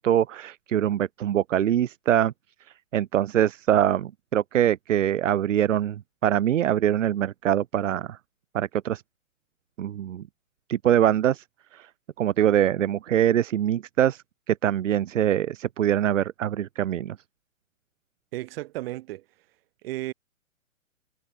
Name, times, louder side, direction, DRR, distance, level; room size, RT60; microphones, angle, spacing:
voice 1, 0.0-2.3 2.9-8.2 8.5-9.0 9.8-10.2 10.7-11.4 11.7-11.9 12.2-14.2 14.5-17.2, right 11 dB, 65° right, 1.3 m, -23 dB
voice 2, 18.3-19.2 19.8-20.1, right 17 dB, 45° right, 7.6 m, -33 dB
hypercardioid pair, 135°, 40 cm